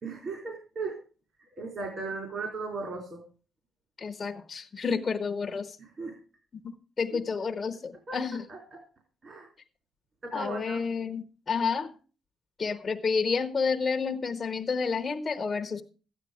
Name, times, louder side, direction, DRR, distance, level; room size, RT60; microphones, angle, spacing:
voice 1, 0.0-1.0 1.6-3.2 5.8-6.2 7.1-7.2 8.1-8.2 8.5-8.6 9.2-9.5 10.2-10.8, right 3 dB, 45° right, 1 dB, 3.6 m, -36 dB
voice 2, 4.0-5.8 6.5-8.4 10.3-11.9 12.6-15.8, left 5 dB, 30° left, 5 dB, 1.0 m, -30 dB
13.5 x 9.8 x 5.0 m, 0.37 s
cardioid pair, 110°, 0 cm